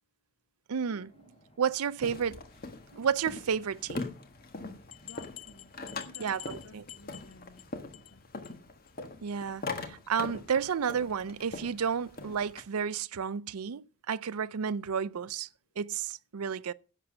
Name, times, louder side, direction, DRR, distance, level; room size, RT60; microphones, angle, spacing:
voice 1, 0.7-1.1 1.6-2.4 2.9-4.1 6.2-6.8 9.2-15.5 15.8-16.7, right 7 dB, 90° right, 0.5 m, -31 dB
sound 1, 0.9-6.7, left 1 dB, 25° left, 1.6 m, -62 dB
voice 2, 2.0-2.4 5.0-8.5, left 2 dB, 90° left, 1.5 m, -56 dB
sound 2, 2.0-12.6, left 3 dB, 40° left, 1.5 m, -42 dB
sound 3, 4.9-7.6 7.9-8.2 8.4-8.5 8.9-9.0 9.3-9.4, left 14 dB, 70° left, 0.6 m, -48 dB
11.0 x 7.5 x 6.1 m
head